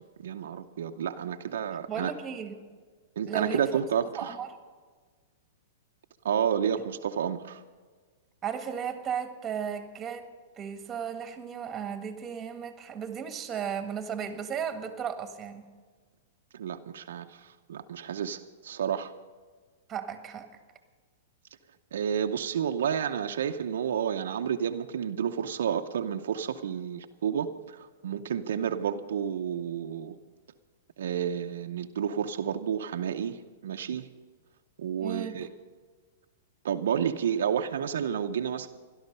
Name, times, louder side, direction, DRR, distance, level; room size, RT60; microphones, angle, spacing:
voice 1, 0.2-2.1 3.2-4.4 6.2-7.6 16.5-19.1 21.9-30.2 31.0-34.1 34.8-35.5 36.6-38.7, right 8 dB, 75° right, 6 dB, 0.7 m, -30 dB
voice 2, 1.9-2.6 3.3-3.8 4.1-4.5 6.7-6.8 8.4-10.3 10.6-15.7 19.9-20.5 35.0-35.4, right 7 dB, 20° right, 7 dB, 1.7 m, -35 dB
17.0 x 12.5 x 5.5 m, 1.5 s
hypercardioid pair, 130°, 0 cm